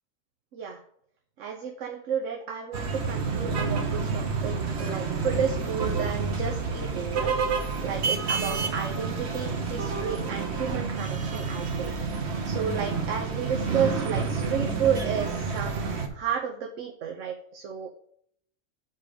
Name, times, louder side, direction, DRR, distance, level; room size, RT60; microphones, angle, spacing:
voice 1, 1.4-17.9, right 7 dB, 80° right, 1 dB, 1.1 m, -32 dB
sound 1, 2.7-16.1, right 4 dB, 60° right, 1.3 m, -29 dB
8.8 x 4.4 x 5.1 m, 0.67 s
omnidirectional pair, 1.3 m